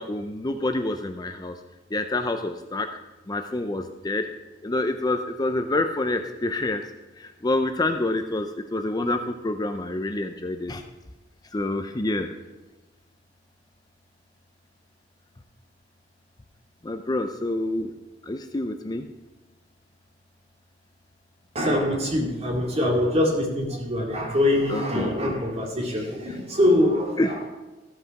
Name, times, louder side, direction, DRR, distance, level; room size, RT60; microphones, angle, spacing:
voice 1, 0.0-1.6 1.9-2.9 3.3-4.3 4.6-6.8 7.2-10.8 11.5-12.3 16.8-17.9 18.2-19.0 24.7-25.3 27.2-27.3, left 2 dB, 20° left, 6 dB, 0.5 m, -27 dB
voice 2, 21.5-27.5, left 1 dB, 35° right, -1 dB, 2.4 m, -24 dB
14.5 x 5.6 x 5.8 m, 1.1 s
head